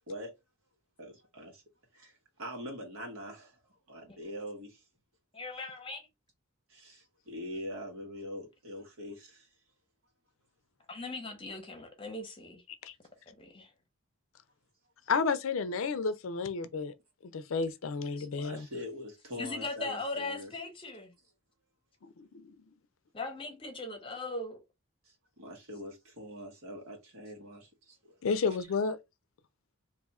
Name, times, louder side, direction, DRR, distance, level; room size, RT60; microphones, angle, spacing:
voice 1, 1.0-1.6 1.9-3.5 3.9-4.8 6.7-9.5 18.3-20.5 25.0-28.1, equal, 85° right, 1.4 m, -43 dB
voice 2, 5.3-6.1 10.9-12.6 13.3-13.7 18.2-18.3 19.4-21.1 23.1-24.6, left 3 dB, 25° left, 0.8 m, -39 dB
voice 3, 15.1-16.9 17.2-18.7 22.2-22.6 28.2-29.0, left 5 dB, 70° left, 0.4 m, -31 dB
2.6 x 2.4 x 4.1 m
head